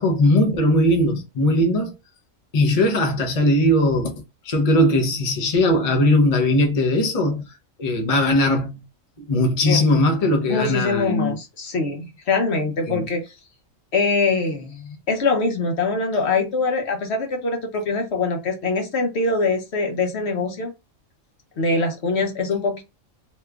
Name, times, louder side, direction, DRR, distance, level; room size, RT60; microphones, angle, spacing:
voice 1, 0.0-1.9 2.5-4.1 4.4-7.5 7.8-8.8 9.2-11.4 12.9-13.1, left 1 dB, 40° left, 0.6 m, -19 dB
voice 2, 10.5-13.3 13.9-20.7 21.6-22.8, left 3 dB, 60° left, 0.9 m, -23 dB
2.9 x 2.3 x 3.3 m
omnidirectional pair, 1.4 m